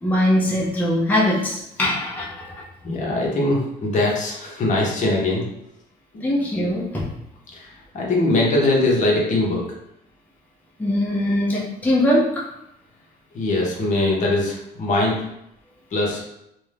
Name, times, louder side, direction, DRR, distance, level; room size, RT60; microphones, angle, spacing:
voice 1, 0.0-2.6 6.2-7.1 10.8-12.5, left 1 dB, 10° left, -5 dB, 0.6 m, -21 dB
voice 2, 2.8-5.4 6.1-6.3 7.5-9.7 13.3-15.2 15.9-16.2, left 2 dB, 45° left, -2 dB, 0.8 m, -21 dB
2.5 x 2.2 x 3.3 m, 0.81 s
cardioid pair, 110°, 17 cm